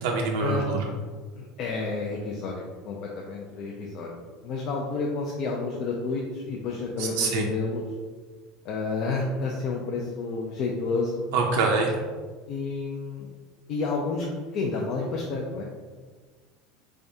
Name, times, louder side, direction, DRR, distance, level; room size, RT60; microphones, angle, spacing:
voice 1, 0.0-0.9 7.0-7.4 11.3-12.0, right 4 dB, 80° right, 0 dB, 0.4 m, -25 dB
voice 2, 1.3-4.2 4.4-7.8 8.6-11.3 12.5-13.3 13.7-14.3 14.5-15.6, left 3 dB, 50° left, -2 dB, 0.5 m, -30 dB
3.5 x 3.4 x 2.7 m, 1.5 s
supercardioid pair, 135°, 0 cm